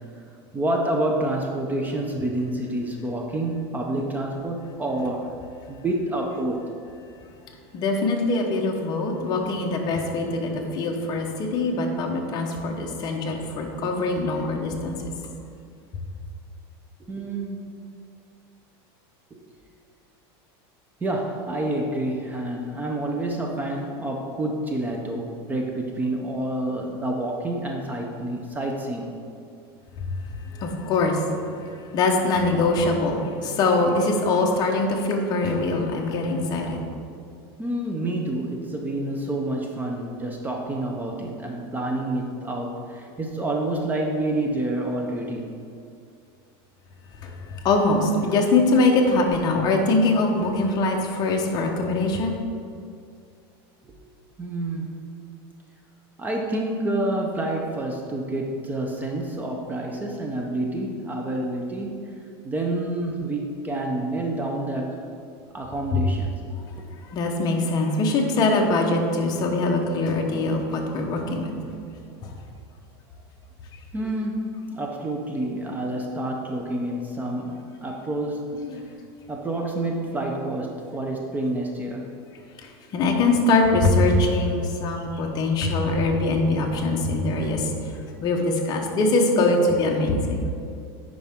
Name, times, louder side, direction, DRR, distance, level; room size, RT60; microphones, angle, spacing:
voice 1, 0.5-5.3 5.7-6.6 17.1-17.8 19.3-19.4 21.0-29.2 37.2-37.3 37.6-45.5 53.8-53.9 54.4-55.3 56.2-62.1 62.4-65.0 65.5-66.3 73.9-78.5 79.3-82.1 85.3-85.5, right 1 dB, 15° right, 1 dB, 0.5 m, -28 dB
voice 2, 7.7-15.0 30.0-30.1 30.5-31.5 31.9-36.8 47.2-47.3 47.6-52.4 65.9-66.0 67.1-71.5 72.2-72.3 78.6-78.8 82.6-87.7 88.2-90.5, left 2 dB, 30° left, 1 dB, 0.9 m, -23 dB
9.9 x 4.9 x 3.6 m, 2.4 s
supercardioid pair, 160°, 13 cm